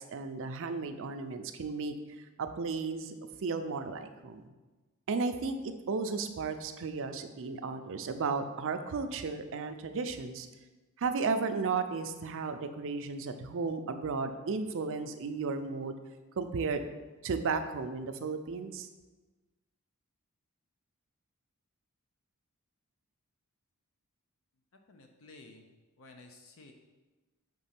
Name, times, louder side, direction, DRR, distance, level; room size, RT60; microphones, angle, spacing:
voice 1, 0.0-1.9 2.4-3.1 3.4-4.5 5.1-10.5 11.0-16.0 16.4-16.8 17.2-18.9, right 4 dB, 60° right, 8 dB, 0.5 m, -34 dB
voice 2, 24.9-25.7 26.0-26.7, left 2 dB, 65° left, 4 dB, 0.6 m, -53 dB
5.3 x 3.7 x 5.8 m, 1.2 s
head